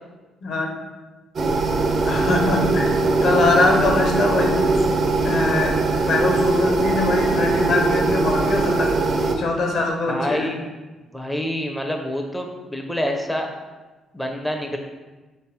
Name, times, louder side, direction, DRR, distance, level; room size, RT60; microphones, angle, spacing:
sound 1, 1.4-9.4, right 3 dB, 50° right, 0.5 m, -21 dB
voice 1, 2.0-4.6 5.2-5.8 6.1-8.9 9.3-10.5, left 2 dB, 70° left, 1 dB, 0.9 m, -22 dB
voice 2, 10.1-10.6 11.1-13.5 14.1-14.8, equal, 5° left, 2 dB, 0.4 m, -27 dB
3.1 x 3.0 x 4.5 m, 1.2 s
cardioid pair, 90°, 0 cm